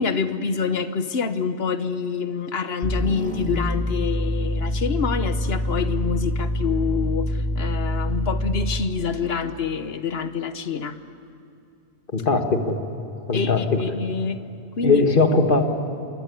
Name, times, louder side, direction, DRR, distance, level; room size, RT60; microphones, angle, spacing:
voice 1, 0.0-11.0 13.3-14.4 14.8-15.0, left 5 dB, 70° left, 11 dB, 1.3 m, -26 dB
sound 1, 2.8-9.0, equal, 5° left, 1.7 m, -26 dB
voice 2, 12.1-12.8 13.3-13.8 14.8-15.7, left 3 dB, 55° left, 5 dB, 2.0 m, -19 dB
27.0 x 21.5 x 8.5 m, 2.6 s
omnidirectional pair, 1.1 m